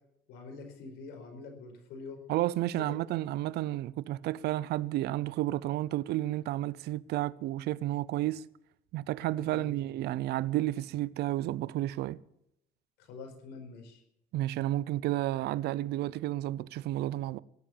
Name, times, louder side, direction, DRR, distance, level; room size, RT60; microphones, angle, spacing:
voice 1, 0.3-2.2 2.8-3.0 9.4-9.7 13.0-14.0, left 4 dB, 85° left, 4.6 m, -45 dB
voice 2, 2.3-8.4 8.9-12.2 14.3-17.4, right 15 dB, 75° right, 0.6 m, -31 dB
18.5 x 7.9 x 8.5 m
cardioid pair, 110°, 17 cm